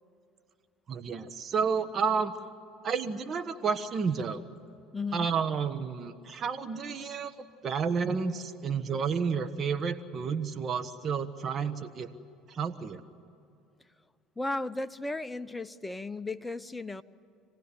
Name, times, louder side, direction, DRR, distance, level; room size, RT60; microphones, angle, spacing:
voice 1, 0.9-2.3 2.8-4.4 5.1-12.1 12.5-13.0, right 6 dB, 45° right, 9 dB, 1.4 m, -31 dB
voice 2, 4.9-5.3 14.4-17.0, left 2 dB, 10° left, 11 dB, 0.9 m, -35 dB
26.5 x 18.0 x 10.0 m, 2.6 s
hypercardioid pair, 75°, 0 cm